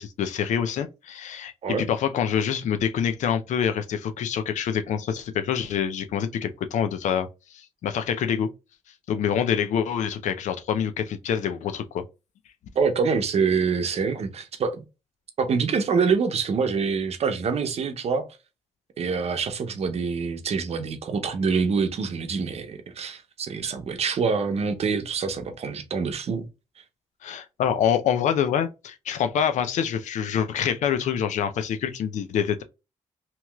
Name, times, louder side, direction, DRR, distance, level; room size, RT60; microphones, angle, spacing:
voice 1, 0.0-8.5 9.1-12.0 27.2-32.6, left 8 dB, 80° left, 0.5 m, -26 dB
voice 2, 12.8-14.9 15.4-18.3 19.0-26.5, right 5 dB, 60° right, 0.7 m, -25 dB
2.9 x 2.9 x 2.3 m
cardioid pair, 80°, 12 cm